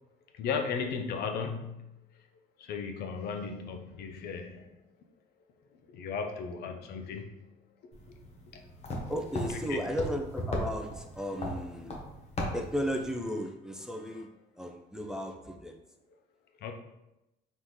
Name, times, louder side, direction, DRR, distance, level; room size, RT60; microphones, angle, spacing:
voice 1, 0.3-1.9 2.6-4.7 5.9-7.5 9.5-9.8 16.6-16.7, left 5 dB, 70° left, 4 dB, 0.6 m, -35 dB
sound 1, 7.9-13.1, left 1 dB, 40° left, 1.0 m, -38 dB
voice 2, 9.1-12.0 12.5-14.3 14.6-15.8, equal, 5° right, 3 dB, 0.4 m, -35 dB
4.1 x 3.6 x 3.1 m, 0.92 s
cardioid pair, 110°, 17 cm